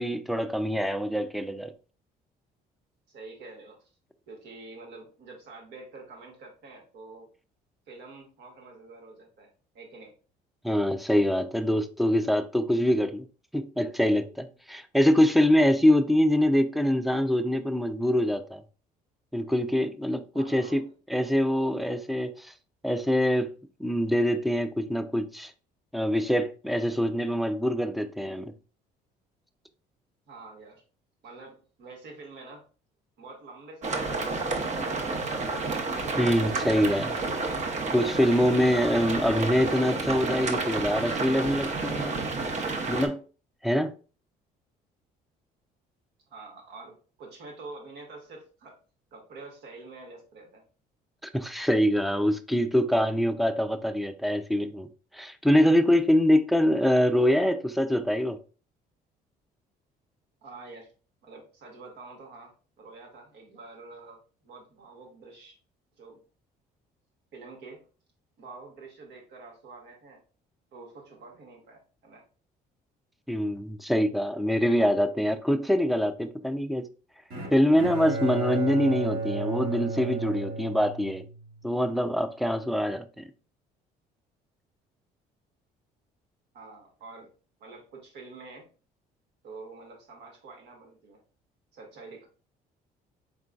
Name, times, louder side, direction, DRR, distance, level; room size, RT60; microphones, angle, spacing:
voice 1, 0.0-1.7 10.6-13.3 13.5-18.6 19.3-22.5 22.8-23.5 23.8-25.5 25.9-28.5 36.2-37.2 37.9-42.2 42.9-43.2 43.6-43.9 51.3-54.9 55.1-58.4 73.3-76.9 77.5-81.2 81.6-83.2, equal, ahead, 0.4 m, -24 dB
voice 2, 3.1-3.8 4.3-7.3 7.9-9.5 9.7-10.1 20.3-20.9 30.3-30.8 31.2-32.6 33.2-34.2 34.5-35.3 46.3-48.8 49.1-50.6 60.4-60.9 61.2-65.6 66.0-66.2 67.3-67.8 68.4-70.2 70.7-72.2 86.5-87.3 87.6-88.7 89.4-91.2 91.7-92.3, right 3 dB, 75° right, 1.7 m, -47 dB
sound 1, 33.8-43.1, right 3 dB, 45° right, 0.9 m, -30 dB
Bowed string instrument, 77.3-81.5, right 3 dB, 60° right, 2.3 m, -33 dB
4.6 x 3.8 x 2.3 m
cardioid pair, 110°, 17 cm